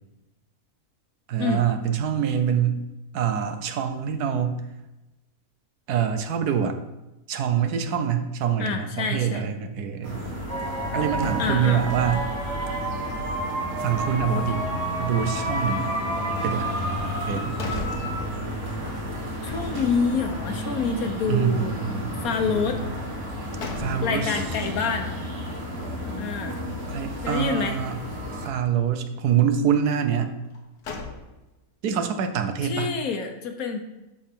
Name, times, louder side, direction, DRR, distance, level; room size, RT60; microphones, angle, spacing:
voice 1, 1.3-2.8 3.1-4.6 5.9-6.8 7.3-10.2 10.9-12.3 13.8-14.7 15.0-15.9 16.4-16.7 17.3-17.6 21.3-22.1 23.8-24.4 26.9-28.0 28.4-30.4 31.8-32.9, right 8 dB, 80° right, 8 dB, 1.3 m, -25 dB
voice 2, 8.6-9.5 11.4-11.8 19.4-21.8 22.2-22.8 24.0-25.1 26.2-26.6 27.2-27.8 32.6-33.8, left 5 dB, 70° left, 6 dB, 1.3 m, -27 dB
sound 1, 10.0-28.5, equal, 40° right, 2.2 m, -32 dB
sound 2, 10.5-18.6, right 1 dB, 25° right, 1.3 m, -31 dB
sound 3, 17.2-18.8 19.2-19.3 23.1-24.4 30.4-31.7, left 3 dB, 85° left, 1.6 m, -37 dB
12.5 x 4.5 x 3.6 m, 0.99 s
omnidirectional pair, 1.6 m